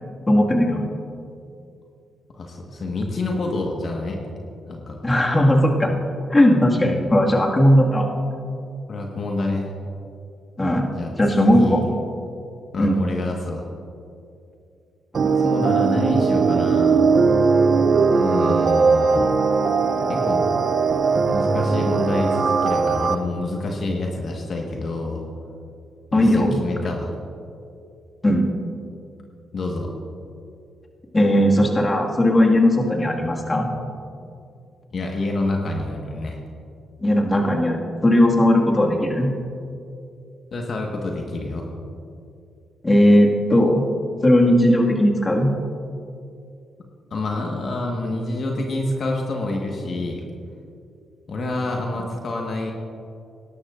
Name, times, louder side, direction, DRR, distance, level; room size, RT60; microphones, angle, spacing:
voice 1, 0.3-0.8 5.0-5.9 6.3-8.1 10.6-10.9 11.2-11.8 12.8-13.0 26.1-26.6 28.2-28.5 31.1-33.7 37.0-39.3 42.8-43.9 44.2-45.5, left 1 dB, 25° left, 0 dB, 1.9 m, -17 dB
voice 2, 2.3-4.2 4.7-5.0 8.9-9.7 10.9-11.1 11.4-11.8 12.7-13.6 15.4-17.1 18.1-19.3 20.1-20.5 21.3-25.2 26.1-27.1 29.5-29.9 34.9-36.4 40.5-41.7 47.1-50.2 51.3-52.7, left 2 dB, 60° left, 0 dB, 1.4 m, -27 dB
sound 1, 15.1-23.2, right 4 dB, 55° right, 0.6 m, -19 dB
18.5 x 11.5 x 2.5 m, 2.5 s
supercardioid pair, 55°, 0 cm